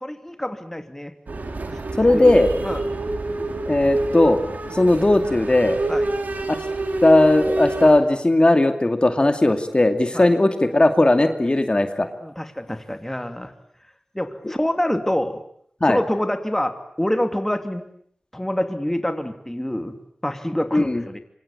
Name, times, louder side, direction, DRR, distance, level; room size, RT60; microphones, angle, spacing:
voice 1, 0.0-1.1 1.7-1.8 2.1-2.4 2.6-2.8 5.9-6.1 10.1-10.3 12.2-13.5 14.1-15.4 15.9-17.9 18.3-20.0 20.2-21.2, left 1 dB, 10° left, 7 dB, 2.6 m, -26 dB
sound 1, 1.3-8.0, right 2 dB, 90° right, 3.9 m, -27 dB
voice 2, 2.0-2.5 3.7-4.4 4.7-5.8 6.5-6.6 7.0-12.1 14.4-14.5 15.8-16.0 20.7-21.0, left 2 dB, 35° left, 7 dB, 2.5 m, -17 dB
26.0 x 25.5 x 8.7 m, 0.65 s
wide cardioid pair, 65°, 3 cm